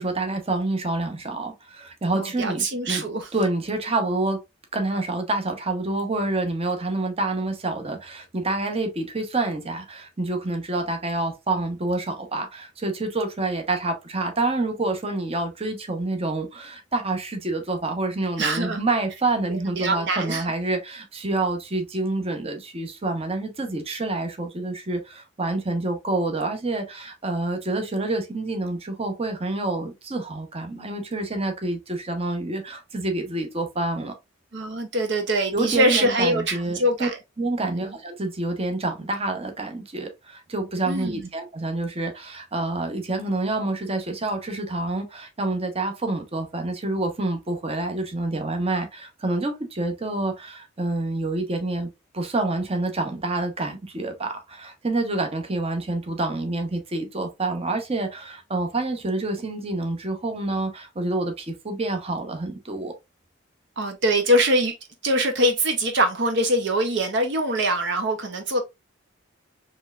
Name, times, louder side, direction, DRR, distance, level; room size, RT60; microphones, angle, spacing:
voice 1, 0.0-3.1 3.3-4.4 4.7-34.1 35.5-37.1 37.4-62.9, right 2 dB, 30° right, 0.9 m, -27 dB
voice 2, 2.1-3.3 18.4-18.8 19.5-20.4 34.5-37.1 37.6-37.9 40.9-41.3 63.8-64.7 65.0-68.6, right 1 dB, 60° right, 0.7 m, -23 dB
4.4 x 3.2 x 2.4 m
head